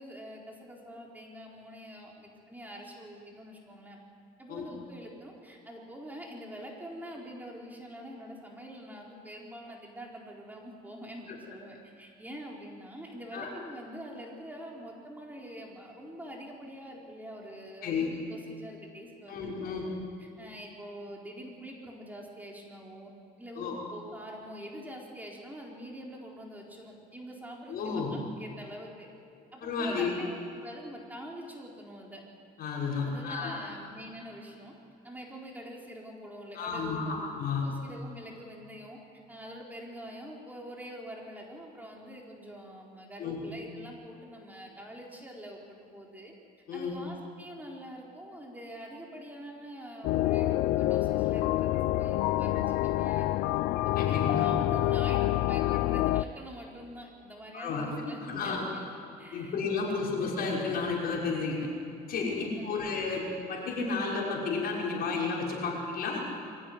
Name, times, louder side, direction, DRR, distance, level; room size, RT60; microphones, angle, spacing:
voice 1, 0.0-4.0 4.4-19.9 20.2-23.1 23.4-29.1 29.5-32.2 33.0-34.7 35.0-37.3 37.6-39.0 39.3-46.3 46.7-53.4 54.0-58.9 59.2-59.6 59.9-60.0 62.3-62.9, equal, 10° right, -2 dB, 4.3 m, -45 dB
voice 2, 19.3-19.9 23.6-23.8 27.7-28.1 29.6-30.1 32.6-33.6 36.5-37.7 43.2-43.4 46.7-46.9 53.9-54.4 57.5-57.8 58.2-58.6 59.3-61.7 62.1-63.2 63.5-66.2, left 4 dB, 65° left, -2 dB, 6.1 m, -32 dB
sound 1, 50.0-56.2, left 16 dB, 90° left, 0.6 m, -27 dB
23.5 x 16.0 x 9.5 m, 2.6 s
cardioid pair, 110°, 17 cm